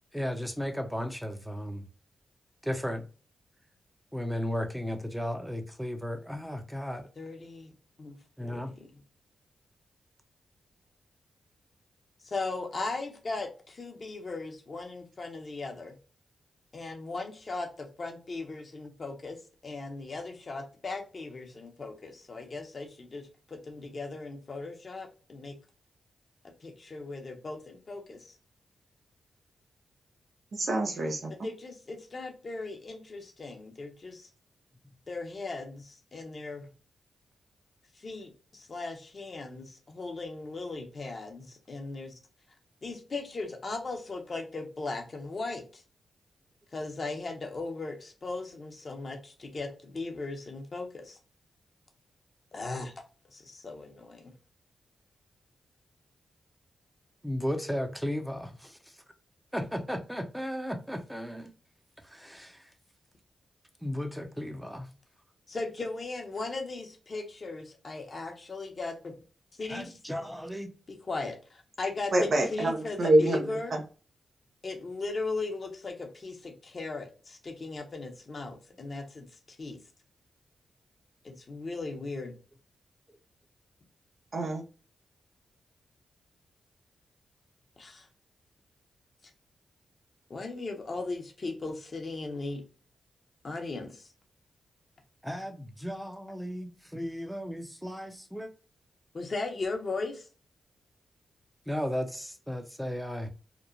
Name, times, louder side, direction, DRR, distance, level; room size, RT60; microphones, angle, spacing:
voice 1, 0.1-1.8 2.6-3.0 4.1-7.0 8.4-8.7 57.2-58.8 59.5-61.5 62.1-62.6 63.8-64.9 69.7-70.7 95.2-98.5 101.7-103.3, equal, 5° right, 0.6 m, -35 dB
voice 2, 7.2-7.7 8.0-8.1 8.4-8.9 12.2-15.9 16.7-19.4 19.6-23.2 23.5-25.5 26.6-28.3 31.4-34.3 35.1-36.7 38.0-42.2 42.8-45.8 46.7-51.2 52.5-53.0 53.3-54.3 65.5-69.1 69.6-70.0 70.9-73.8 74.6-79.8 81.2-82.3 87.8-88.1 90.3-92.6 93.4-94.1 99.1-100.3, left 3 dB, 50° left, 0.8 m, -38 dB
voice 3, 30.5-31.3 72.1-73.4 73.7-73.8 84.3-84.6, right 1 dB, 60° right, 0.6 m, -25 dB
3.0 x 2.1 x 2.5 m
supercardioid pair, 40°, 0 cm